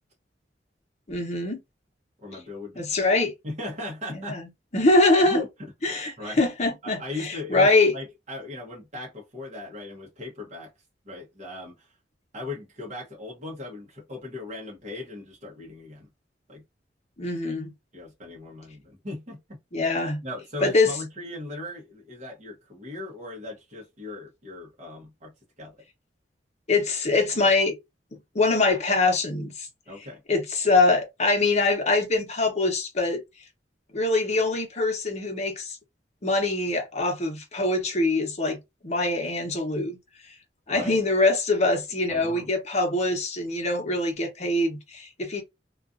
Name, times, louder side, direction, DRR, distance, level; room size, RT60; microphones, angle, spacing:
voice 1, 1.1-1.6 2.8-3.3 4.1-5.4 5.8-7.9 17.2-17.7 19.7-20.2 20.6-20.9 26.7-27.8 28.3-29.7 30.3-33.2 33.9-35.8 36.2-40.0 40.3-40.4 40.7-45.4, left 2 dB, 40° left, 0.8 m, -23 dB
voice 2, 2.2-2.9 3.4-4.4 5.2-5.7 6.2-6.4 6.8-10.7 11.0-11.9 12.3-16.1 16.5-16.6 17.5-17.6 17.9-19.6 20.2-25.7 29.9-30.2 40.7-41.0 42.1-42.5, left 2 dB, 40° right, 0.9 m, -38 dB
2.4 x 2.3 x 2.5 m
head